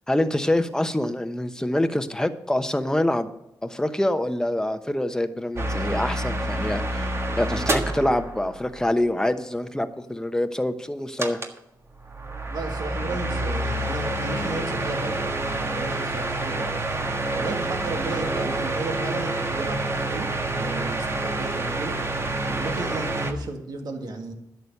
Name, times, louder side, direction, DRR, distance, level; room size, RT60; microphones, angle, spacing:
voice 1, 0.1-3.3 3.6-11.4, left 1 dB, 10° left, 9 dB, 1.0 m, -25 dB
sound 1, 5.6-8.9 11.2-11.6 12.0-23.3, right 2 dB, 35° right, 1.5 m, -28 dB
voice 2, 12.5-16.7 17.4-22.0 22.6-24.3, right 2 dB, 65° right, 4 dB, 1.9 m, -34 dB
11.0 x 7.0 x 6.7 m, 0.85 s
cardioid pair, 60°, 7 cm